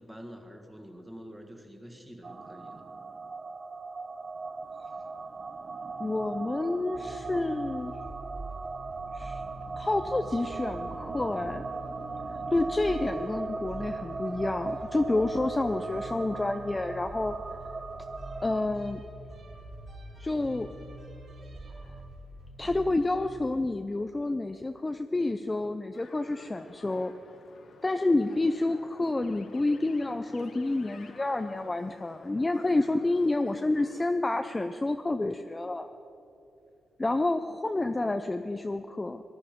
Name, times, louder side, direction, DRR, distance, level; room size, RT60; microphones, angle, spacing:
voice 1, 0.0-2.8, equal, 5° right, 3 dB, 1.5 m, -47 dB
sound 1, 2.2-18.6, right 3 dB, 30° right, 0.6 m, -38 dB
voice 2, 6.0-7.9 9.1-9.4 9.8-11.6 12.3-17.4 18.4-19.0 20.2-20.7 22.6-27.1 27.8-35.9 37.0-39.2, left 2 dB, 15° left, 8 dB, 0.4 m, -29 dB
sound 2, 6.9-24.2, right 1 dB, 55° right, 3.8 m, -45 dB
sound 3, 25.9-34.1, left 4 dB, 55° left, 1.2 m, -53 dB
20.5 x 11.5 x 5.2 m, 2.8 s
wide cardioid pair, 145°, 0 cm